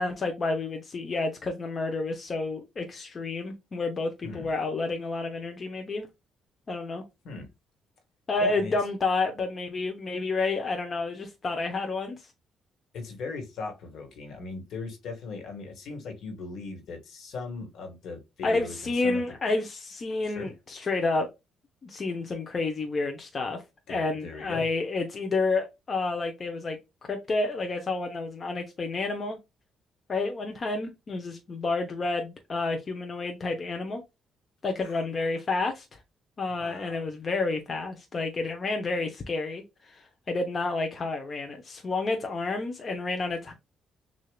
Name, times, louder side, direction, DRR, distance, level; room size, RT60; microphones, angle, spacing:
voice 1, 0.0-6.1 6.7-7.0 8.3-12.2 18.4-21.3 21.8-23.6 23.9-29.4 30.1-34.0 34.6-35.9 36.4-43.5, left 3 dB, 40° left, 0.9 m, -30 dB
voice 2, 8.4-8.7 12.9-19.2 20.2-20.5 23.9-24.7 34.8-35.0 36.6-37.1, left 4 dB, 70° left, 1.7 m, -39 dB
6.5 x 2.7 x 2.3 m
cardioid pair, 90°, 0 cm